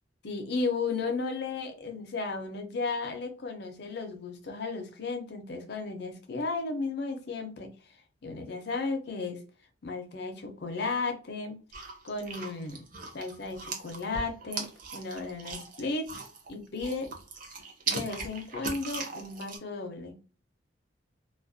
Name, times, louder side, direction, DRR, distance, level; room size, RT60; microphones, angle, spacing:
voice 1, 0.2-7.7 8.2-9.4 9.8-11.6 12.0-12.8 13.1-16.1 16.5-17.1 17.9-20.1, left 3 dB, 60° left, 0.5 m, -34 dB
sound 1, 11.7-16.5 16.8-19.6, right 4 dB, 45° right, 0.5 m, -38 dB
2.4 x 2.1 x 2.5 m
head